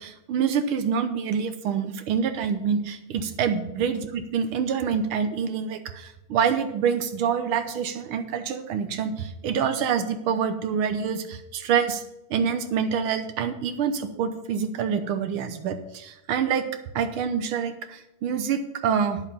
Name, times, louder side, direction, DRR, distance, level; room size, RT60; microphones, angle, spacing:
voice 1, 0.0-12.0 12.3-16.7 17.0-19.2, right 7 dB, 85° right, 8 dB, 1.8 m, -26 dB
11.0 x 7.3 x 5.5 m, 0.90 s
omnidirectional pair, 2.3 m